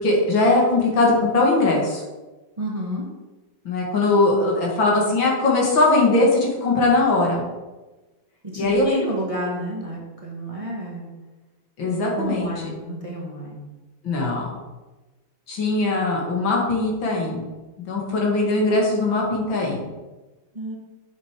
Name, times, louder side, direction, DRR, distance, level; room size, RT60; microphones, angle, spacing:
voice 1, 0.0-2.0 3.6-7.5 8.6-9.1 11.8-12.5 14.0-14.5 15.5-17.5 17.9-19.9, left 2 dB, 70° left, -1 dB, 2.7 m, -20 dB
voice 2, 2.6-3.1 8.4-11.1 11.8-13.7 20.5-20.8, equal, 20° right, -3 dB, 1.4 m, -30 dB
8.2 x 6.2 x 5.2 m, 1.2 s
omnidirectional pair, 2.2 m